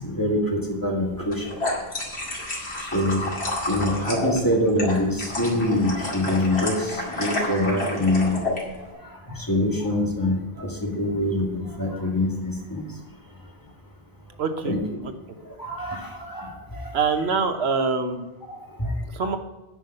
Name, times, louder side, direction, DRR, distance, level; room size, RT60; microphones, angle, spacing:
voice 1, 0.0-1.6 2.8-3.3 3.7-8.4 8.7-12.9 14.6-14.8 15.4-16.9 18.5-18.9 19.2-19.3, left 1 dB, 20° left, -1 dB, 2.1 m, -25 dB
sound 1, 1.2-8.6, left 2 dB, 90° left, 2.6 m, -30 dB
voice 2, 14.4-14.7 16.9-18.3 19.1-19.4, right 5 dB, 85° right, 8 dB, 1.2 m, -24 dB
9.7 x 5.6 x 7.8 m, 1.1 s
omnidirectional pair, 1.1 m